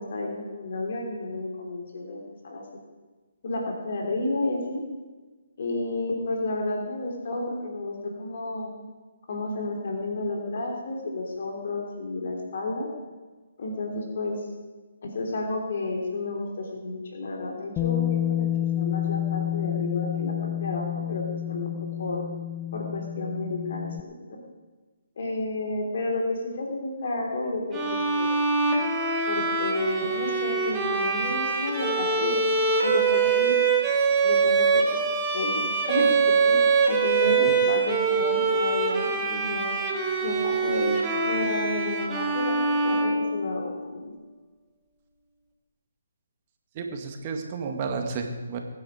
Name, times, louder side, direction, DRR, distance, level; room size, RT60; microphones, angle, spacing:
voice 1, 0.0-2.6 3.4-4.8 5.6-8.7 9.3-12.9 13.6-14.4 15.0-18.5 18.8-21.2 21.5-21.7 22.0-22.2 22.7-24.4 25.2-28.3 29.3-32.4 32.8-33.5 34.2-35.0 35.3-36.6 36.9-39.8 40.2-44.1, left 2 dB, 55° left, 0 dB, 3.3 m, -31 dB
Bass guitar, 17.8-24.0, left 11 dB, 20° left, 0.5 m, -29 dB
Bowed string instrument, 27.7-43.8, right 4 dB, 15° right, 2.2 m, -24 dB
voice 2, 46.8-48.6, right 4 dB, 35° right, 4 dB, 2.1 m, -31 dB
22.5 x 9.8 x 5.0 m, 1.3 s
figure-of-eight pair, 140°, 0 cm